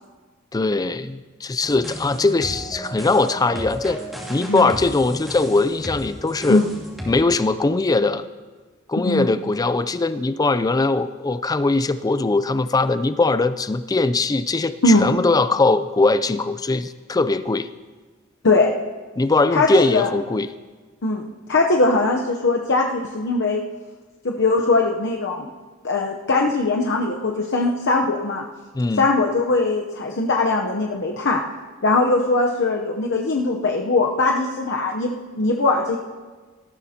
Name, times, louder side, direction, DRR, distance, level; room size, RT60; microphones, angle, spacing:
voice 1, 0.5-4.0 4.3-6.6 7.1-8.2 8.9-17.7 19.2-20.5 28.7-29.1, left 3 dB, 20° left, 13 dB, 0.4 m, -20 dB
sound 1, 1.6-7.1, equal, ahead, 2.6 m, -34 dB
voice 2, 18.4-18.8 19.5-20.1 21.0-21.2 21.5-23.6 24.2-25.5 25.8-28.4 29.0-31.4 31.8-35.1 35.4-36.0, left 3 dB, 60° left, 0 dB, 0.8 m, -20 dB
18.5 x 13.5 x 2.9 m, 1.4 s
head